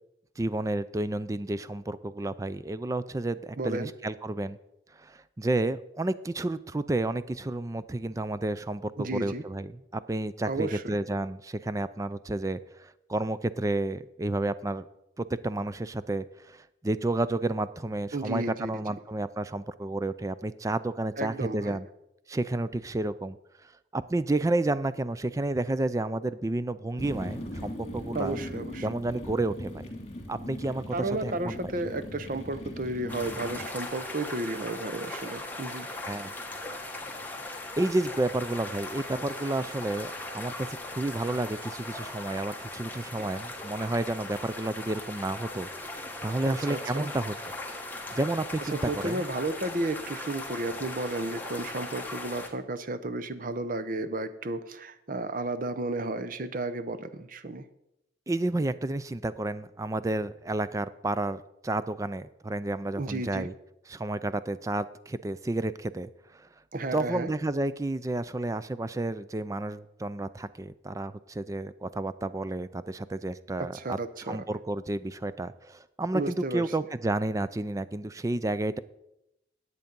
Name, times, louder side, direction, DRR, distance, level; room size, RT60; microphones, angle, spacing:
voice 1, 0.4-4.6 5.0-14.8 15.2-21.9 22.3-23.4 23.9-28.4 28.8-29.9 30.3-31.5 36.0-36.3 37.8-40.7 40.9-47.3 48.1-49.2 58.3-63.5 63.9-66.1 66.4-66.5 66.9-74.0 74.3-78.8, right 2 dB, 20° right, 14 dB, 0.4 m, -31 dB
voice 2, 3.6-3.9 9.0-9.4 10.5-10.8 18.1-18.7 21.2-21.8 28.1-28.9 30.9-35.9 43.2-43.3 46.4-47.1 48.7-57.6 63.0-63.5 66.7-67.3 73.6-74.4 76.1-76.7, right 2 dB, 50° right, 11 dB, 0.7 m, -33 dB
sound 1, 27.0-33.7, left 1 dB, 35° left, 2.1 m, -39 dB
sound 2, 33.1-52.5, left 2 dB, 10° left, 1.2 m, -39 dB
10.5 x 8.2 x 5.3 m, 0.84 s
head